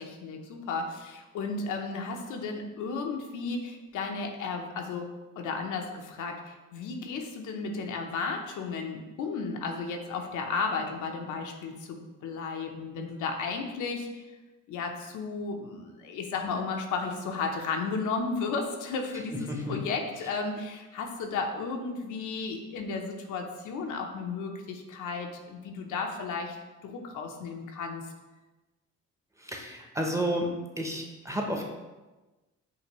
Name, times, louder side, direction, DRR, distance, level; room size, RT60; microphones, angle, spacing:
voice 1, 0.0-5.1 5.4-14.2 14.7-26.6 26.8-28.1, left 4 dB, 85° left, 3 dB, 0.7 m, -34 dB
voice 2, 19.5-19.8 29.4-30.5 30.8-31.6, equal, 10° right, 1 dB, 0.7 m, -31 dB
5.5 x 2.6 x 3.0 m, 1.1 s
cardioid pair, 90°, 30 cm